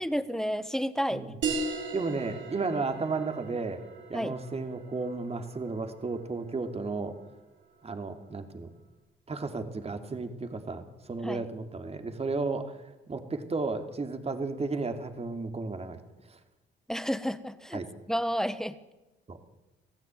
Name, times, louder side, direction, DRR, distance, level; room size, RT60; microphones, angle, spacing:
voice 1, 0.0-1.3 4.1-4.3 11.2-11.4 16.9-17.8 18.1-18.8, equal, ahead, 13 dB, 1.4 m, -31 dB
sound 1, 1.4-6.5, right 4 dB, 75° right, 5.8 m, -37 dB
voice 2, 1.9-3.8 4.1-7.1 7.8-8.7 9.3-12.8 13.1-16.0 16.3-16.4 17.7-17.9 19.3-19.4, right 3 dB, 30° right, 7 dB, 2.9 m, -33 dB
26.0 x 16.0 x 9.2 m, 1.0 s
cardioid pair, 90°, 20 cm